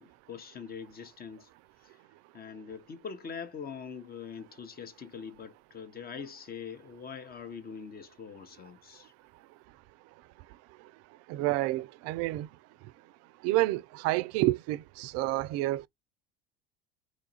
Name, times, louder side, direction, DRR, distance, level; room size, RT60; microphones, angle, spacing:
voice 1, 0.0-1.5 1.8-2.0 2.3-9.1, left 6 dB, 30° left, 0.7 m, -43 dB
voice 2, 11.3-12.5 13.4-15.9, right 17 dB, 50° right, 0.4 m, -29 dB
3.1 x 2.3 x 4.1 m
hypercardioid pair, 85°, 31 cm